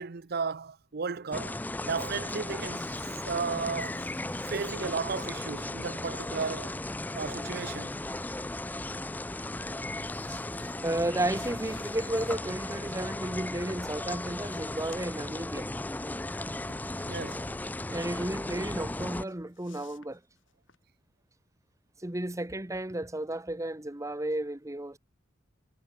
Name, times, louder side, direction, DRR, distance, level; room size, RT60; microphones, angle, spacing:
voice 1, 0.0-4.1 4.5-6.7 7.1-7.9 17.0-17.5, right 5 dB, 50° right, 0.7 m, -34 dB
sound 1, 1.3-19.3, left 2 dB, 10° left, 0.4 m, -36 dB
sound 2, 9.7-12.6 13.7-13.8 14.2-15.3 15.6-17.8 18.2-18.9 19.1-20.8, left 7 dB, 75° left, 5.6 m, -58 dB
voice 2, 10.8-15.7 17.9-20.2 22.0-25.0, right 1 dB, 15° right, 1.1 m, -33 dB
head